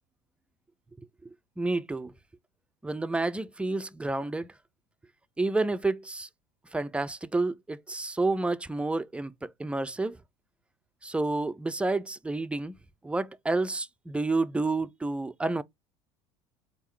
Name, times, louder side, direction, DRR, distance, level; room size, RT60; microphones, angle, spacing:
voice 1, 1.6-2.1 2.8-4.5 5.4-6.3 6.7-10.2 11.0-12.7 13.0-15.6, right 2 dB, 10° right, 0.4 m, -29 dB
4.1 x 3.5 x 3.1 m
hypercardioid pair, 85°, 15 cm